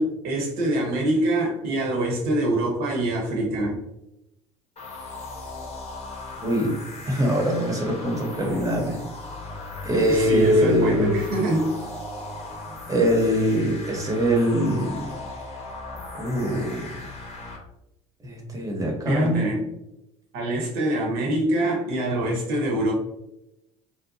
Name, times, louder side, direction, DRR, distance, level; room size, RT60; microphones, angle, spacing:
voice 1, 0.0-3.8 10.1-11.8 19.1-19.7 20.3-22.9, right 1 dB, 65° right, -1 dB, 0.9 m, -25 dB
sound 1, 4.8-17.6, left 2 dB, 35° left, 0.8 m, -38 dB
voice 2, 6.4-6.8 7.1-9.0 9.8-11.2 12.9-15.1 16.1-17.0 18.2-19.5, equal, 20° right, -1 dB, 0.9 m, -23 dB
2.7 x 2.1 x 2.6 m, 0.87 s
hypercardioid pair, 65°, 17 cm